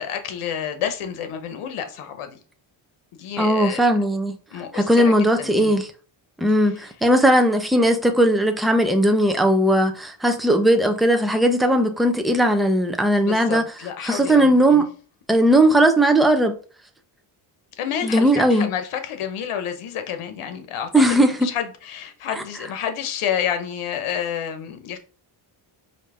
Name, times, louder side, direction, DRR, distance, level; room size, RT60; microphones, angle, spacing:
voice 1, 0.0-2.4 3.1-3.9 4.5-5.1 5.4-5.8 6.7-6.8 13.2-14.9 17.8-25.0, left 9 dB, 85° left, 0.9 m, -29 dB
voice 2, 3.4-4.4 4.7-5.9 6.4-13.6 14.0-14.9 15.3-16.6 18.0-18.7 20.9-21.5, right 1 dB, ahead, 0.6 m, -18 dB
5.0 x 2.8 x 3.3 m
cardioid pair, 95°, 49 cm